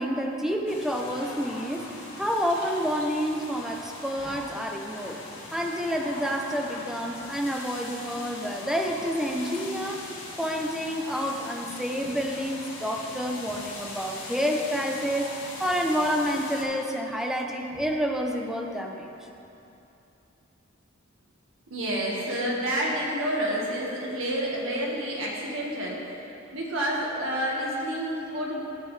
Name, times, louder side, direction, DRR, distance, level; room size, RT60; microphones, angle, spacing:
voice 1, 0.0-1.9 2.2-5.2 5.5-10.0 10.4-15.3 15.6-19.1, equal, ahead, 1 dB, 0.6 m, -29 dB
sound 1, 0.7-16.6, left 2 dB, 70° left, 2.1 m, -40 dB
voice 2, 21.7-26.0 26.5-28.7, equal, 75° right, -3 dB, 1.6 m, -29 dB
13.0 x 7.7 x 3.3 m, 2.9 s
head